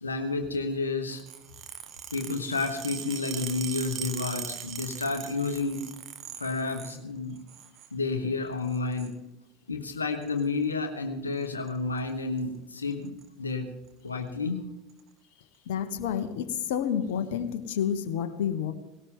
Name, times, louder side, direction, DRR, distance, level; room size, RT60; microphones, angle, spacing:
voice 1, 0.0-1.2 2.1-5.9 6.3-7.4 7.9-9.2 9.7-13.7 14.0-14.7, left 3 dB, 85° left, 4 dB, 1.2 m, -31 dB
sound 1, 1.1-7.0 7.4-7.9 8.6-9.1 10.2-10.4 11.4-11.7 12.0-12.1 12.4-12.5 12.8-13.3 13.9-14.0 14.9-15.0, right 9 dB, 45° right, 1.8 m, -40 dB
voice 2, 15.7-18.7, left 8 dB, 65° left, 8 dB, 1.3 m, -29 dB
19.0 x 17.5 x 3.8 m, 0.96 s
figure-of-eight pair, 75°, 0 cm